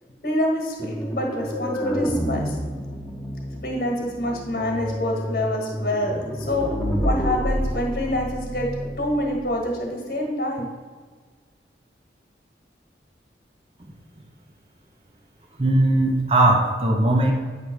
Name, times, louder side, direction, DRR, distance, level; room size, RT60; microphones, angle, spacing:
voice 1, 0.2-2.6 3.6-6.7 7.0-10.7, left 1 dB, 60° left, 0 dB, 1.5 m, -26 dB
sound 1, 0.8-9.5, equal, 5° left, 1.0 m, -29 dB
voice 2, 15.6-17.3, right 1 dB, 35° right, 1 dB, 0.8 m, -19 dB
9.1 x 3.4 x 6.3 m, 1.5 s
head